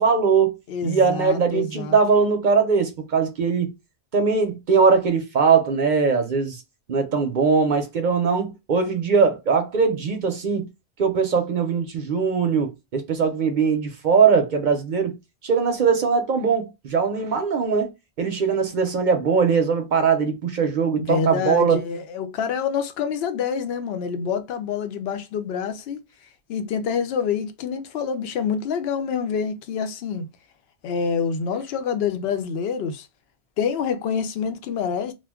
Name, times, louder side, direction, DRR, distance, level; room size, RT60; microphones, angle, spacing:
voice 1, 0.0-0.5 0.8-3.7 4.1-6.6 6.9-10.7 11.0-15.2 15.4-17.9 18.2-21.8, right 5 dB, 55° right, 0.6 m, -21 dB
voice 2, 0.7-2.0 21.0-26.0 26.5-30.3 30.8-33.1 33.6-35.1, left 6 dB, 75° left, 0.8 m, -26 dB
2.3 x 2.1 x 3.4 m
omnidirectional pair, 1.1 m